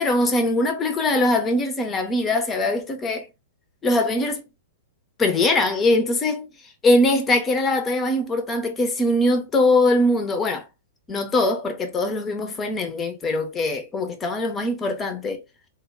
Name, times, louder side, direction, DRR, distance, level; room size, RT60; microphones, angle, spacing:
voice 1, 0.0-3.3 3.8-4.5 5.2-6.5 6.8-10.7 11.1-15.4, left 2 dB, 20° left, 0.6 m, -22 dB
2.2 x 2.1 x 3.2 m
figure-of-eight pair, 105°, 0 cm